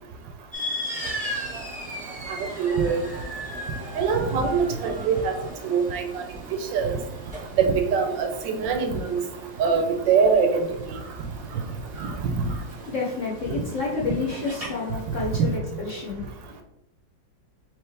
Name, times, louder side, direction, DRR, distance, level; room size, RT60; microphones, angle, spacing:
sound 1, 0.5-15.5, equal, 25° right, 0.8 m, -38 dB
voice 1, 2.3-3.0 4.0-5.4 5.6-6.2 6.7-7.0 7.6-9.2 9.6-11.0 12.0-12.1, right 5 dB, 75° right, 6 dB, 1.2 m, -23 dB
voice 2, 12.9-16.6, left 4 dB, 55° left, -4 dB, 0.9 m, -30 dB
4.7 x 3.1 x 3.2 m, 0.81 s
omnidirectional pair, 2.1 m